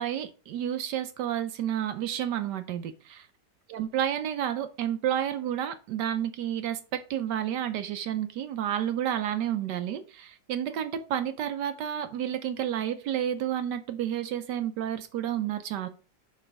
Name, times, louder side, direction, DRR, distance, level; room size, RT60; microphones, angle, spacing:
voice 1, 0.0-3.3 3.7-15.9, right 10 dB, 70° right, 10 dB, 1.1 m, -30 dB
6.8 x 3.2 x 5.1 m, 0.35 s
omnidirectional pair, 2.1 m